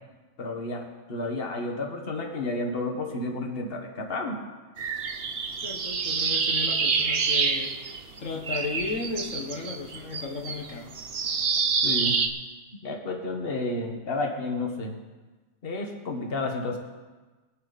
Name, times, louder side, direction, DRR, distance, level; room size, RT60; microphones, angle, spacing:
voice 1, 0.4-4.4 11.8-12.2 12.8-14.9 15.6-16.8, left 2 dB, 45° left, 2 dB, 1.8 m, -31 dB
sound 1, 4.8-8.2 8.4-12.3, right 5 dB, 50° right, 1.1 m, -27 dB
voice 2, 5.6-7.8 8.2-10.9, left 3 dB, 70° left, 1 dB, 1.8 m, -34 dB
22.0 x 9.4 x 4.2 m, 1.3 s
omnidirectional pair, 1.4 m